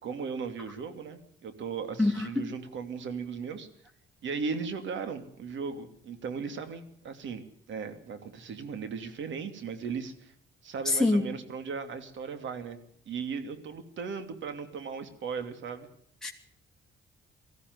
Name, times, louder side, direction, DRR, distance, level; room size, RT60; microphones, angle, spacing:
voice 1, 0.0-3.7 4.2-10.3 10.6-12.8 13.1-15.9, right 5 dB, 70° right, 9 dB, 2.7 m, -37 dB
voice 2, 2.0-2.5 10.8-11.2 16.2-16.3, left 2 dB, 5° left, -1 dB, 2.9 m, -25 dB
19.5 x 14.5 x 9.5 m, 0.65 s
cardioid pair, 90°, 20 cm